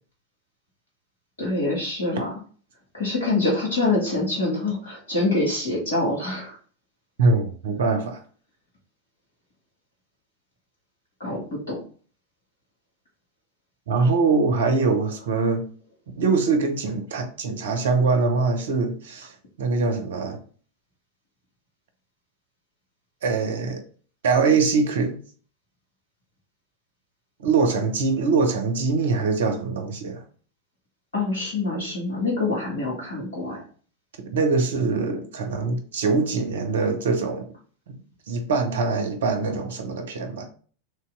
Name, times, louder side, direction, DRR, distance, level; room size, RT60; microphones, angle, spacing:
voice 1, 1.4-2.3 2.9-6.6 11.2-11.8 31.1-33.6, left 2 dB, 70° left, 1.6 m, -25 dB
voice 2, 7.2-8.2 13.9-15.7 16.2-19.3 19.6-20.4 23.2-23.8 24.2-25.2 27.4-30.2 34.2-37.5 37.9-38.0 38.3-40.4, right 4 dB, 60° right, 0.7 m, -23 dB
3.2 x 2.9 x 3.4 m
figure-of-eight pair, 90°, 0 cm